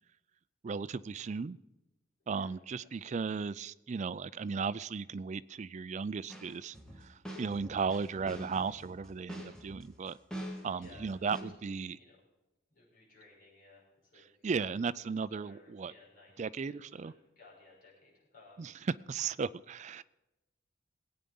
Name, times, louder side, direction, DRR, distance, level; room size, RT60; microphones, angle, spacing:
voice 1, 0.6-1.6 2.3-6.8 7.0-10.2 10.6-12.0 14.4-15.9 16.4-17.1 18.6-18.7 19.1-20.0, right 5 dB, 40° right, 17 dB, 0.4 m, -36 dB
voice 2, 2.2-2.5 2.8-3.3 10.6-12.2 12.7-14.5 15.3-18.7, left 3 dB, 45° left, -6 dB, 6.4 m, -60 dB
sound 1, 6.3-11.4, equal, 5° left, 1.8 m, -45 dB
19.5 x 8.8 x 5.4 m, 1.0 s
head